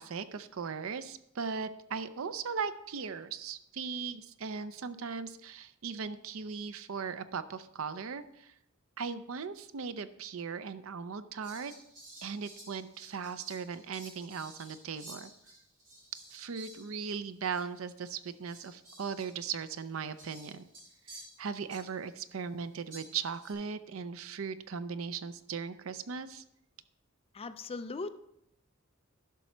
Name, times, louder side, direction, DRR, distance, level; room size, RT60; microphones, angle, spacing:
voice 1, 0.0-8.5 9.0-11.7 12.2-15.3 16.3-20.6 21.1-26.4, right 5 dB, 70° right, 13 dB, 0.5 m, -38 dB
Fowl, 11.4-17.2 17.5-17.6 18.2-22.1 22.9-23.5, right 1 dB, 40° right, 3.3 m, -53 dB
voice 2, 27.3-28.2, left 3 dB, 25° left, 11 dB, 0.4 m, -39 dB
11.5 x 6.1 x 4.4 m, 0.78 s
head